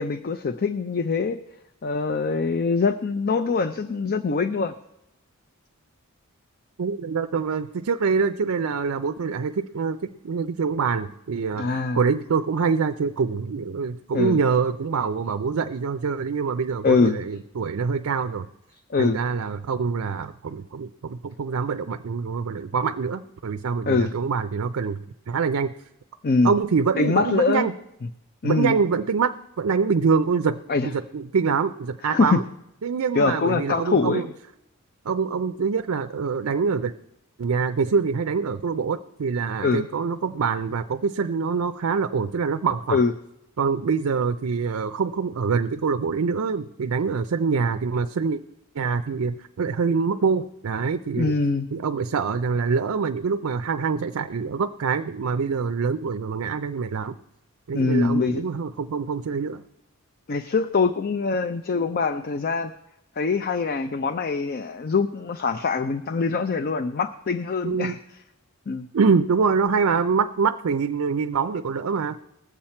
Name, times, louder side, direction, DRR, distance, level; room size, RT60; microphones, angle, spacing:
voice 1, 0.0-1.4 1.8-4.7 11.6-12.0 14.1-14.4 16.8-17.2 18.9-19.2 23.9-24.1 26.2-26.5 27.0-27.7 28.4-28.8 30.7-30.9 32.0-32.4 33.1-34.2 39.6-39.8 42.9-43.1 51.2-51.7 57.7-58.4 60.3-62.7 63.2-68.0 68.7-68.9, left 4 dB, 45° left, 11 dB, 0.5 m, -23 dB
voice 2, 6.8-10.0 10.2-18.5 19.0-25.7 26.4-27.7 28.4-32.4 32.8-34.3 35.1-36.9 37.4-43.0 43.6-48.4 48.7-51.4 51.7-57.2 57.7-59.6 67.6-67.9 68.9-72.2, right 5 dB, 70° right, 9 dB, 0.4 m, -25 dB
19.5 x 7.3 x 4.3 m, 0.86 s
head